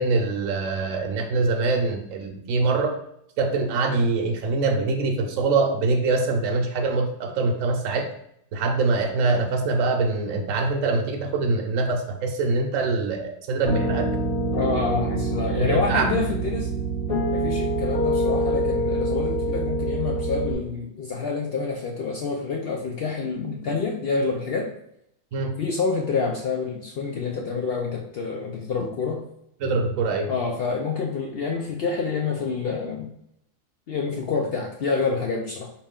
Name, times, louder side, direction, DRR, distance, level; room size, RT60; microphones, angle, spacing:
voice 1, 0.0-2.9 3.4-8.1 8.5-14.1 15.6-16.2 25.3-25.5 29.6-30.3, right 3 dB, 75° right, 3 dB, 1.0 m, -24 dB
Piano, 13.6-20.5, right 1 dB, 90° left, 1.9 m, -25 dB
voice 2, 14.5-16.7 17.3-24.7 25.6-29.2 30.3-33.1 33.9-35.7, left 4 dB, 60° left, 1 dB, 0.6 m, -27 dB
4.3 x 3.0 x 3.6 m, 0.74 s
omnidirectional pair, 1.4 m